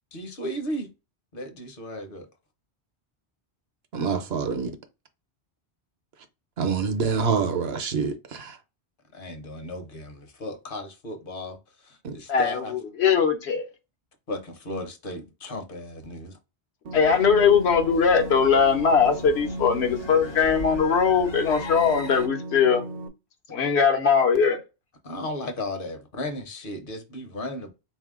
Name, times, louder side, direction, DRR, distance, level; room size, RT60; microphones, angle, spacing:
voice 1, 0.1-0.9 1.3-2.3 9.1-12.7 14.3-16.4 25.0-27.7, left 1 dB, 55° left, 0.9 m, -35 dB
voice 2, 3.9-4.7 6.6-8.6 12.0-12.2, right 5 dB, 75° right, 0.9 m, -26 dB
voice 3, 12.3-13.7 16.9-22.8 23.5-24.6, left 6 dB, 80° left, 1.1 m, -21 dB
sound 1, 16.9-22.3, left 3 dB, 35° left, 0.4 m, -40 dB
sound 2, 16.9-23.1, right 1 dB, 55° right, 0.6 m, -36 dB
3.8 x 2.7 x 3.6 m
omnidirectional pair, 1.1 m